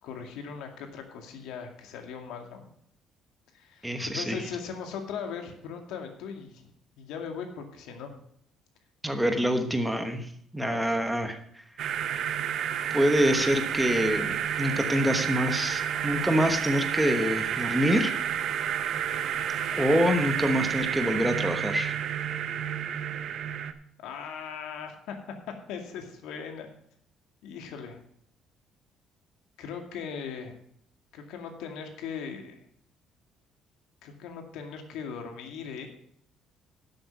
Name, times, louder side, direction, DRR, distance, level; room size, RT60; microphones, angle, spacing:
voice 1, 0.0-2.7 3.5-3.9 4.1-6.6 7.0-8.2 10.6-11.1 19.7-20.1 24.0-25.2 25.7-26.7 27.4-28.0 29.6-30.6 31.1-32.6 34.0-35.9, left 6 dB, 90° left, 4 dB, 2.2 m, -39 dB
voice 2, 3.8-4.4 9.0-11.4 12.9-18.1 19.8-22.0, equal, 5° right, 7 dB, 1.1 m, -26 dB
sound 1, 11.8-23.7, right 9 dB, 50° right, 0.8 m, -30 dB
12.0 x 7.9 x 5.3 m, 0.67 s
cardioid pair, 165°, 0 cm